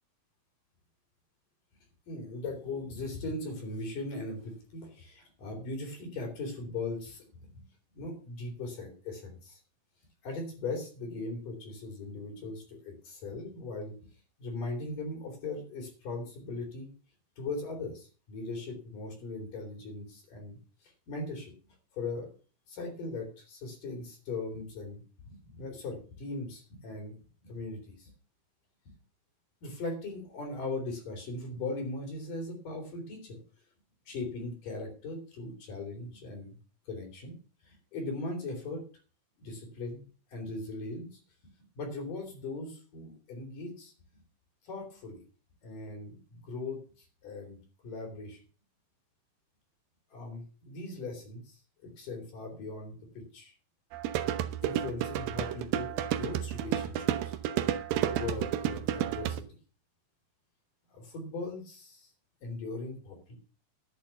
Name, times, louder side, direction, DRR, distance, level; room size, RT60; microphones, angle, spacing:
voice 1, 2.1-7.6 7.9-9.6 10.2-13.9 14.4-16.9 17.4-20.6 21.1-21.5 21.9-22.3 22.7-27.1 27.4-28.1 28.9-29.0 29.6-33.4 34.1-36.6 36.9-37.3 37.6-38.8 39.4-41.2 41.7-43.9 44.6-45.2 45.6-48.4 50.1-53.5 54.6-57.4 58.1-59.4 60.9-62.1 62.4-63.4, left 3 dB, 60° left, 1 dB, 5.0 m, -39 dB
sound 1, 53.9-59.4, right 11 dB, 75° right, 2.5 m, -31 dB
11.5 x 6.9 x 7.0 m, 0.39 s
omnidirectional pair, 4.3 m